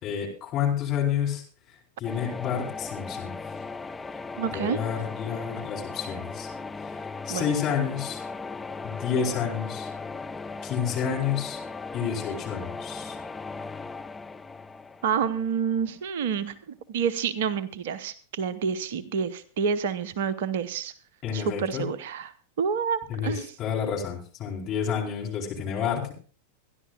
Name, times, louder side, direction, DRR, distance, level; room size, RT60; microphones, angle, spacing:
voice 1, 0.0-1.4 2.0-3.4 4.5-6.5 6.8-7.0 7.2-8.2 8.8-9.9 10.6-11.6 11.9-13.2 21.2-21.8 23.1-23.3 23.6-26.1, left 8 dB, 35° left, -2 dB, 4.5 m, -29 dB
sound 1, 2.0-15.9, left 4 dB, 10° left, 0.5 m, -37 dB
voice 2, 4.4-4.8 7.3-7.5 15.0-20.9 21.3-22.3 22.6-23.5, right 6 dB, 55° right, 16 dB, 0.8 m, -28 dB
24.5 x 11.0 x 2.4 m, 0.40 s
figure-of-eight pair, 90°, 0 cm